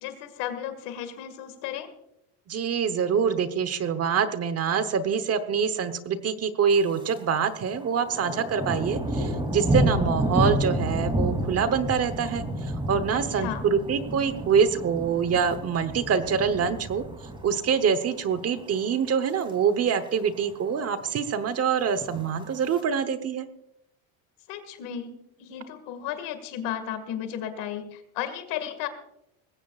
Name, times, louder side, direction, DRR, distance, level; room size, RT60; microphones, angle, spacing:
voice 1, 0.0-1.9 13.1-13.6 24.5-28.9, left 10 dB, 70° left, 9 dB, 2.1 m, -34 dB
voice 2, 2.5-17.0 17.4-23.5, right 6 dB, 35° right, 11 dB, 1.0 m, -25 dB
Thunder, 6.7-7.2 7.5-17.9 18.3-18.6 19.1-19.5 19.8-19.9 20.0-20.1 20.5-21.1 21.9-22.8, right 1 dB, 10° right, 3.0 m, -30 dB
20.0 x 16.0 x 2.5 m, 0.81 s
cardioid pair, 125°, 42 cm